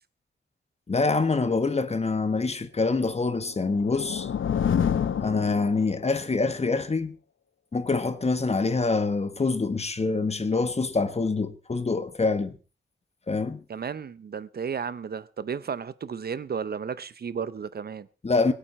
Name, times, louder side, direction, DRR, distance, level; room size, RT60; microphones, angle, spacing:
voice 1, 0.9-4.3 5.2-7.2 7.7-12.6 13.3-13.6 18.2-18.5, left 3 dB, 30° left, 1.5 m, -25 dB
sound 1, 3.3-6.2, left 8 dB, 85° left, 0.9 m, -28 dB
voice 2, 13.7-18.1, right 6 dB, 55° right, 0.7 m, -33 dB
23.0 x 9.0 x 4.3 m
wide cardioid pair, 120°, 20 cm